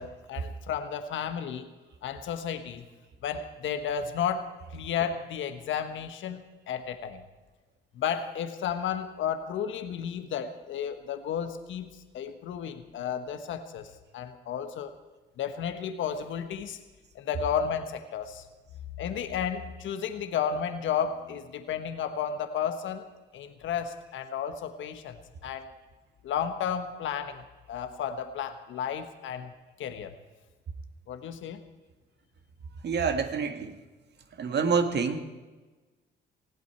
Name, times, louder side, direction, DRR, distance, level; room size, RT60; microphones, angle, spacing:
voice 1, 0.0-1.7 2.0-2.8 3.2-7.2 7.9-14.9 15.4-16.8 17.1-18.4 19.0-23.1 23.3-25.7 26.2-29.5 29.8-30.1 31.1-31.6, left 8 dB, 75° left, 8 dB, 1.4 m, -33 dB
voice 2, 32.8-33.8 34.4-35.2, right 5 dB, 60° right, 7 dB, 1.8 m, -27 dB
20.0 x 15.5 x 4.5 m, 1.3 s
cardioid pair, 90°, 20 cm